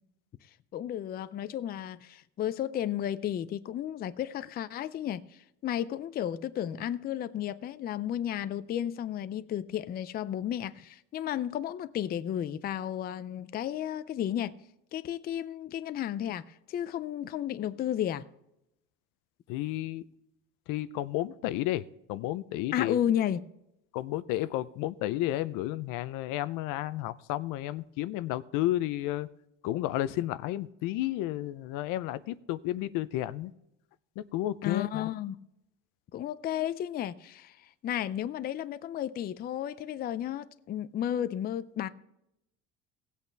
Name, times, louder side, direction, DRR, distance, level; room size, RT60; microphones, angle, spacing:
voice 1, 0.7-5.2 5.6-14.6 14.9-18.3 22.7-23.4 34.6-35.3 36.1-37.6 37.8-41.9, left 10 dB, 30° left, 0.4 m, -33 dB
voice 2, 19.5-20.0 20.7-21.8 22.1-23.0 23.9-29.3 29.6-33.5 34.2-35.1, left 15 dB, 80° left, 0.6 m, -32 dB
17.5 x 8.3 x 3.4 m
cardioid pair, 150°, 31 cm